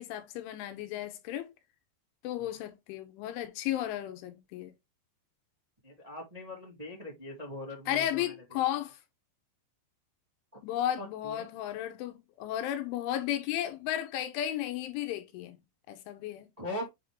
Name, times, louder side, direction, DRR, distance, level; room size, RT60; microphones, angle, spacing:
voice 1, 0.0-1.5 2.2-4.7 7.9-9.0 10.6-15.6 15.9-16.5, left 12 dB, 80° left, 3.1 m, -34 dB
voice 2, 5.8-8.6 11.0-11.5 16.6-16.9, left 1 dB, 35° right, 0.6 m, -41 dB
8.4 x 3.7 x 3.0 m
omnidirectional pair, 5.8 m